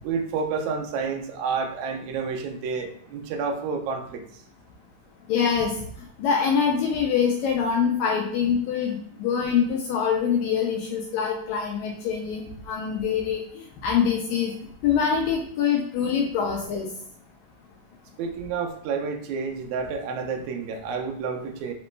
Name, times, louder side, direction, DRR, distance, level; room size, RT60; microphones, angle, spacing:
voice 1, 0.0-4.4 18.2-21.7, right 5 dB, 80° right, 4 dB, 1.8 m, -30 dB
voice 2, 5.3-5.7 6.2-14.5 14.8-16.9, left 7 dB, 85° left, 1 dB, 1.6 m, -24 dB
5.1 x 3.0 x 3.1 m, 0.66 s
omnidirectional pair, 3.7 m